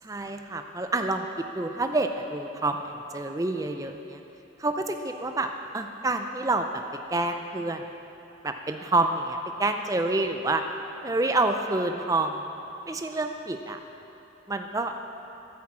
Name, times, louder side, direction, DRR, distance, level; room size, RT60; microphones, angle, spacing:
voice 1, 0.0-1.2 1.6-4.2 4.6-5.5 5.7-6.7 7.1-7.8 8.4-10.6 11.0-12.4 12.9-13.8 14.5-14.9, right 2 dB, 15° right, 6 dB, 0.4 m, -28 dB
11.0 x 8.8 x 7.4 m, 2.9 s
head